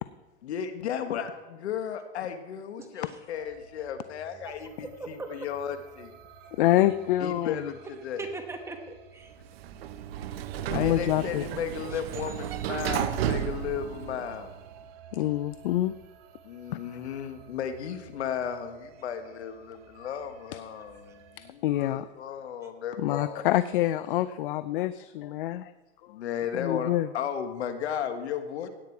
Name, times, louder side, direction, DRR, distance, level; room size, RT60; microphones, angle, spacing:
voice 1, 0.4-6.1 7.2-7.8 8.0-8.2 10.7-14.5 16.4-23.5 26.1-28.7, left 8 dB, 75° left, 8 dB, 1.7 m, -34 dB
voice 2, 2.8-3.2 4.4-4.5 4.8-5.3 7.8-7.9 8.2-9.3 11.9-12.8 21.1-21.2 22.6-22.7, right 3 dB, 10° right, 4 dB, 1.1 m, -41 dB
sound 1, 3.3-21.5, right 7 dB, 40° right, 1.1 m, -53 dB
voice 3, 6.6-7.7 10.7-11.4 15.1-15.9 21.4-22.1 23.0-25.7 26.5-27.1, left 14 dB, 50° left, 15 dB, 0.5 m, -26 dB
Sliding door, 9.4-14.6, right 10 dB, 60° right, 0.9 m, -33 dB
17.0 x 9.4 x 4.6 m, 1.1 s
hypercardioid pair, 150°, 34 cm